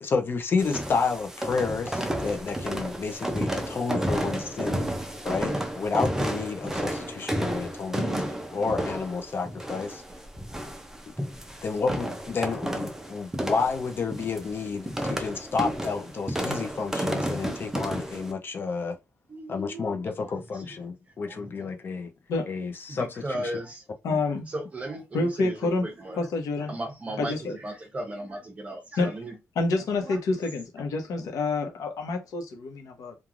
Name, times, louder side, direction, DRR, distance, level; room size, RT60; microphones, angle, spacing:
voice 1, 0.0-4.9 5.2-8.2 8.5-10.0 11.6-18.9 19.5-22.1 22.5-23.5 24.1-24.2, left 4 dB, 40° left, 0.5 m, -30 dB
sound 1, 0.6-18.3, right 1 dB, 10° right, 0.4 m, -32 dB
voice 2, 19.3-20.8 21.2-21.7 22.9-23.8 24.2-26.3 26.6-29.4 30.0-30.2, right 1 dB, 25° right, 0.8 m, -37 dB
voice 3, 24.0-24.5 25.1-25.8 26.2-26.8 27.2-27.6 29.0-29.1 29.6-33.2, left 3 dB, 85° left, 0.9 m, -28 dB
3.1 x 2.3 x 2.4 m
wide cardioid pair, 165°, 6 cm